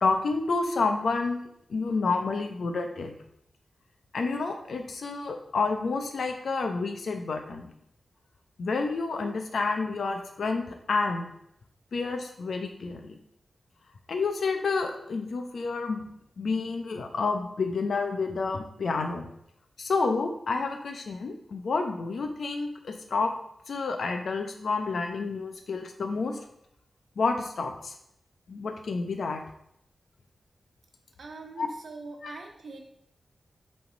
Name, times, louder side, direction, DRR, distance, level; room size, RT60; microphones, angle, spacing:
voice 1, 0.0-3.1 4.1-7.7 8.6-11.3 11.9-13.2 14.1-16.0 16.4-19.3 19.8-23.3 23.7-26.4 27.2-27.9 28.5-29.4 31.6-31.7 32.2-32.4, left 4 dB, 75° left, 4 dB, 1.0 m, -29 dB
voice 2, 31.2-32.8, right 3 dB, 75° right, 1 dB, 1.4 m, -43 dB
8.7 x 3.7 x 5.2 m, 0.75 s
wide cardioid pair, 145°, 0 cm